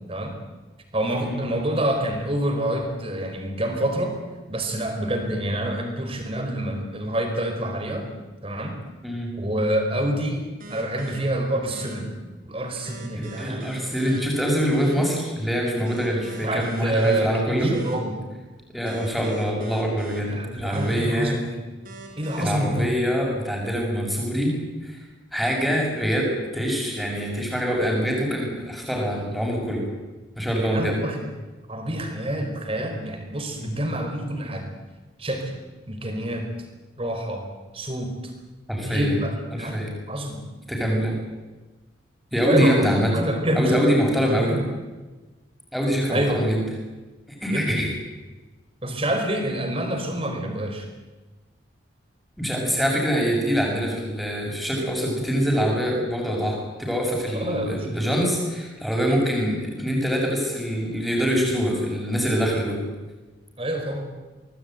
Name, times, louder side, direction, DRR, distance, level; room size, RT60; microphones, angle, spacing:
voice 1, 0.9-4.2 4.5-8.1 8.4-8.8 9.4-12.2 12.4-13.7 16.4-18.2 20.2-21.6 22.2-22.9 30.5-31.3 31.7-34.7 35.2-35.5 35.9-36.5 37.0-37.5 37.7-38.3 38.8-40.4 42.4-42.9 43.1-43.8 44.4-44.7 46.1-46.4 47.5-47.8 48.8-50.9 57.3-57.9 63.6-64.1, right 1 dB, 30° right, 4 dB, 4.6 m, -27 dB
sound 1, 10.6-11.2 11.7-11.9 12.8-14.2 14.7-14.9 15.8-17.2 17.7-17.9 18.8-20.2 20.7-20.9 21.8-22.4, right 2 dB, 45° right, 5.7 m, -41 dB
voice 2, 13.1-17.7 18.7-21.4 22.4-24.5 24.8-25.0 25.3-29.8 30.3-30.9 33.6-33.8 38.7-39.2 39.6-39.9 40.7-41.1 42.3-43.1 43.5-44.6 45.7-46.6 47.4-47.9 52.4-62.8, equal, ahead, -1 dB, 6.8 m, -24 dB
25.0 x 19.5 x 9.3 m, 1.2 s
head